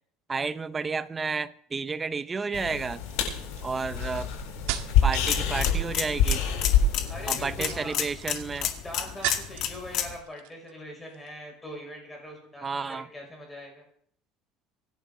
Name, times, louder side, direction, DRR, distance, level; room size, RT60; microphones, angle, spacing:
voice 1, 0.3-3.0 3.6-4.3 5.0-6.4 7.3-8.7 12.6-13.1, right 4 dB, 15° right, 0.7 m, -31 dB
sound 1, 1.8-2.2 2.9-5.3 5.6-6.1 7.4-9.8 10.1-10.8 11.0-11.3, right 13 dB, 75° right, 1.8 m, -37 dB
sound 2, 2.5-7.8, left 6 dB, 65° left, 7.8 m, -27 dB
sound 3, 5.1-10.2, left 10 dB, 45° left, 2.0 m, -32 dB
voice 2, 7.1-8.1 8.6-13.8, equal, 10° left, 6.1 m, -42 dB
25.0 x 11.0 x 3.8 m
cardioid pair, 170°, 0 cm